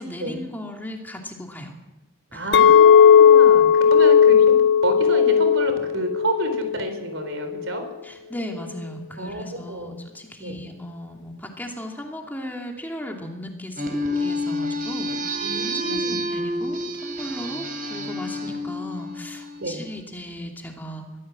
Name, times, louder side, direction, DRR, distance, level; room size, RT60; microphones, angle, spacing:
voice 1, 0.0-1.7 2.3-2.6 8.0-13.8 14.2-15.4 15.7-21.0, left 1 dB, 10° left, 1 dB, 2.7 m, -36 dB
voice 2, 2.3-4.4 4.8-7.9 9.2-9.4 9.7-10.0 10.4-10.6 15.4-16.2 19.6-19.8, right 2 dB, 70° right, 8 dB, 4.0 m, -29 dB
Chink clink, 2.5-6.9 7.2-7.7, left 7 dB, 60° left, 1.1 m, -15 dB
sound 1, 13.8-19.8, equal, 45° right, 3.9 m, -29 dB
23.5 x 15.5 x 7.6 m, 1.1 s
head